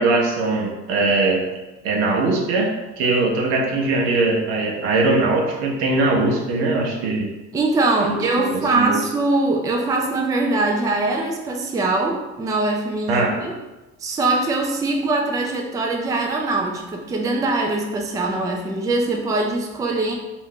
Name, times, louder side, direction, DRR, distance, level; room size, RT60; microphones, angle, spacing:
voice 1, 0.0-1.4 1.8-2.7 3.0-7.3 8.0-8.2 8.5-9.0 13.1-13.4, right 3 dB, 75° right, 0 dB, 0.8 m, -20 dB
voice 2, 7.5-13.5 14.0-20.2, right 2 dB, 10° right, 1 dB, 0.4 m, -22 dB
2.6 x 2.6 x 3.6 m, 1.1 s
hypercardioid pair, 80°, 35 cm